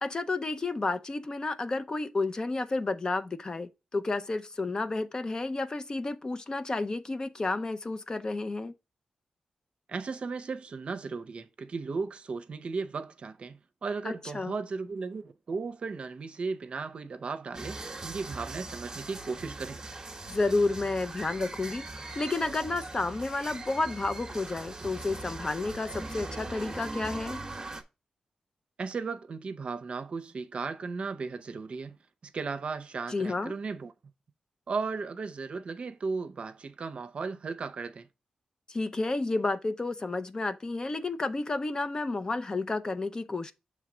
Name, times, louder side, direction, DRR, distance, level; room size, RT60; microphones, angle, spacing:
voice 1, 0.0-8.7 14.0-14.6 20.3-21.9 22.2-27.4 33.1-33.5 38.7-43.5, left 3 dB, 35° left, 0.6 m, -31 dB
voice 2, 9.9-19.8 28.8-32.0 32.2-33.9 34.7-38.1, right 4 dB, 55° right, 0.6 m, -36 dB
sound 1, 17.5-27.8, right 2 dB, 25° right, 0.9 m, -41 dB
6.4 x 3.3 x 4.8 m
cardioid pair, 85°, 2 cm